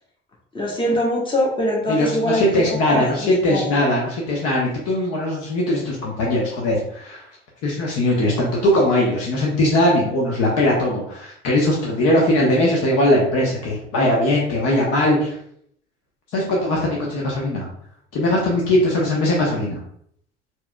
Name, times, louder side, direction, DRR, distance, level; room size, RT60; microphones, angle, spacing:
voice 1, 0.5-3.8, left 1 dB, 15° left, -3 dB, 1.5 m, -23 dB
voice 2, 1.9-7.2 7.6-15.4 16.3-17.7 18.1-19.8, left 1 dB, 50° left, -2 dB, 1.1 m, -20 dB
4.5 x 3.8 x 2.3 m, 0.66 s
figure-of-eight pair, 60°, 31 cm